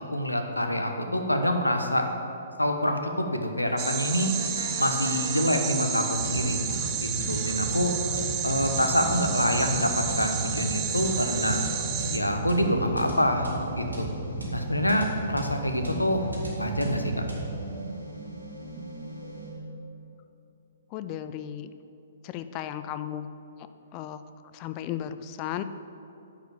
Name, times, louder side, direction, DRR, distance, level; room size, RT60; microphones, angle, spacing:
voice 1, 0.1-2.1 2.6-4.3 4.8-6.6 6.9-7.9 8.4-11.6 12.1-13.5 13.7-14.1 14.5-16.3 16.6-17.1, left 1 dB, 85° left, 5 dB, 1.0 m, -26 dB
sound 1, 3.8-12.2, right 9 dB, 25° right, 0.7 m, -31 dB
sound 2, 4.2-19.6, right 1 dB, 90° right, 2.6 m, -35 dB
voice 2, 20.9-21.7 22.2-23.3 23.9-24.2 24.5-25.6, left 11 dB, 30° left, 11 dB, 0.4 m, -35 dB
10.5 x 5.1 x 7.2 m, 2.8 s
figure-of-eight pair, 120°, 0 cm